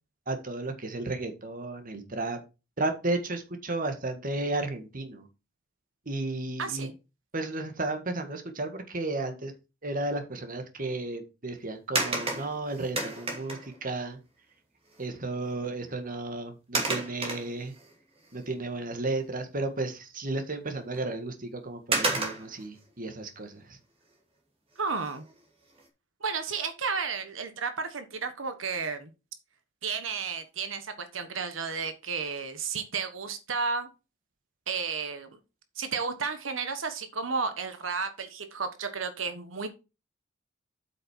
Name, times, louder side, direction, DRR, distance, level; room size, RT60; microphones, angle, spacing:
voice 1, 0.3-2.4 2.8-5.3 6.1-6.9 7.3-9.5 9.8-14.2 15.0-17.7 18.3-23.8, right 2 dB, 45° right, 7 dB, 1.7 m, -33 dB
voice 2, 6.6-6.9 24.8-25.2 26.2-29.1 29.8-33.9 34.7-35.3 35.7-39.7, right 5 dB, 85° right, 9 dB, 1.3 m, -32 dB
sound 1, 12.0-13.8 15.0-15.1 15.5-15.7 16.7-17.9 18.4-18.5 20.9-21.0 21.9-22.7 24.9-25.3 25.8-25.9, right 3 dB, 30° right, 2.5 m, -31 dB
8.2 x 6.4 x 4.5 m, 0.28 s
head